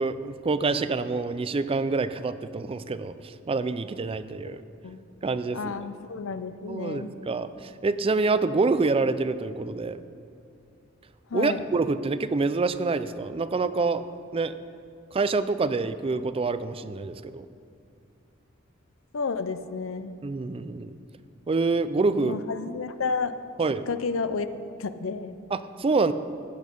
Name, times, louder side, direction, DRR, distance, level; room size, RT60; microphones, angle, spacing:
voice 1, 0.0-4.6 5.2-5.7 6.7-10.0 11.3-14.0 14.3-14.5 15.1-17.5 20.2-20.9 21.5-22.4 23.6-23.8 25.5-26.1, right 3 dB, 30° right, 13 dB, 0.4 m, -26 dB
voice 2, 5.5-7.1 11.3-11.7 19.1-20.1 22.2-23.3 23.9-24.5 24.8-25.4, left 4 dB, 90° left, 11 dB, 0.6 m, -31 dB
14.5 x 8.6 x 5.3 m, 2.4 s
head